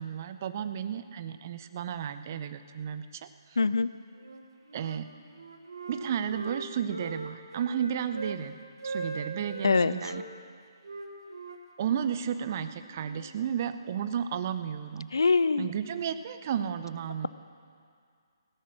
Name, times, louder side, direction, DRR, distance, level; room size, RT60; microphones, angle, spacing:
voice 1, 0.0-3.3 4.7-5.1 5.9-8.6 8.8-10.2 11.8-15.1 15.6-17.3, right 8 dB, 35° right, 11 dB, 0.6 m, -33 dB
voice 2, 3.6-3.9 9.6-9.9 15.1-15.7, left 4 dB, 65° left, 15 dB, 0.5 m, -23 dB
Wind instrument woodwind instrument, 4.2-5.0 5.3-8.4 8.8-10.3 10.8-13.3, right 3 dB, 60° right, 1.4 m, -40 dB
16.5 x 10.5 x 6.3 m, 2.2 s
figure-of-eight pair, 140°, 2 cm